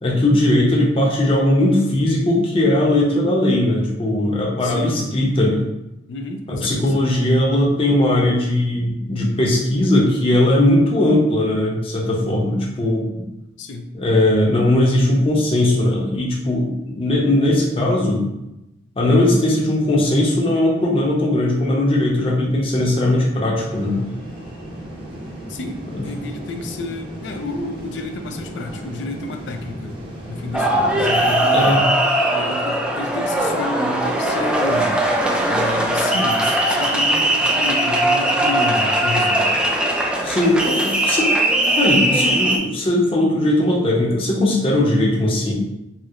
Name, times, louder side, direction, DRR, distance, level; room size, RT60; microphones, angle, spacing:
voice 1, 0.0-5.7 6.5-13.0 13.9-18.3 19.0-24.0 25.9-26.0 31.5-31.8 40.2-41.4 41.7-45.5, left 1 dB, 30° left, -3 dB, 0.6 m, -18 dB
voice 2, 4.6-5.1 6.1-7.0 13.6-13.9 25.5-30.0 30.3-31.8 32.3-35.0 35.5-39.6, left 2 dB, 80° left, 5 dB, 0.4 m, -30 dB
sound 1, 23.6-31.3, right 1 dB, 30° right, 0.7 m, -35 dB
sound 2, 30.5-42.6, right 1 dB, 5° right, 0.3 m, -19 dB
4.2 x 2.0 x 2.4 m, 0.93 s
head